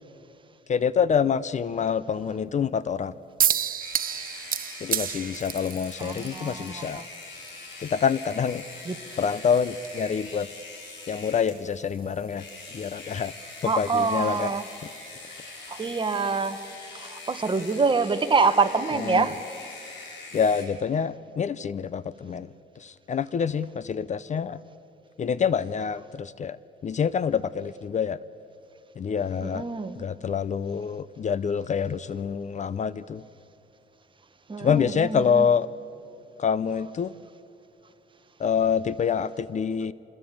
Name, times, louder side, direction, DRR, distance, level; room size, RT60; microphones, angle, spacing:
voice 1, 0.7-3.2 4.8-7.0 7.8-8.6 9.2-10.5 11.1-12.5 12.7-13.3 13.6-14.5 18.9-19.3 20.3-22.5 22.8-24.6 25.2-26.6 26.8-28.2 29.0-29.6 30.0-33.2 34.6-35.7 36.4-37.1 38.4-39.9, left 7 dB, 40° left, 17 dB, 0.6 m, -26 dB
sound 1, 3.4-16.7, right 9 dB, 50° right, 0.9 m, -35 dB
sound 2, 3.8-11.6 12.3-20.6, left 3 dB, 75° left, 5.9 m, -43 dB
voice 2, 6.0-7.1 8.8-9.0 13.7-14.6 15.7-16.6 16.9-19.4 29.4-30.0 34.5-35.5, right 4 dB, 25° right, 9 dB, 1.3 m, -26 dB
27.5 x 21.0 x 8.6 m, 2.8 s
cardioid pair, 130°, 19 cm